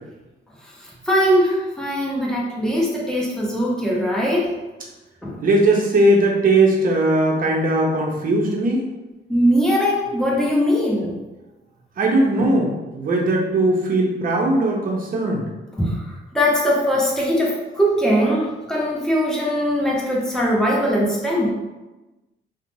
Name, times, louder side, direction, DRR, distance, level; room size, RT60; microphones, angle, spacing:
voice 1, 0.8-4.6 5.2-5.4 9.3-11.2 12.4-12.5 15.8-21.6, equal, 5° left, -5 dB, 0.7 m, -21 dB
voice 2, 5.4-8.8 12.0-15.4, right 1 dB, 45° right, -1 dB, 0.6 m, -19 dB
2.5 x 2.1 x 3.1 m, 1.1 s
cardioid pair, 90°, 20 cm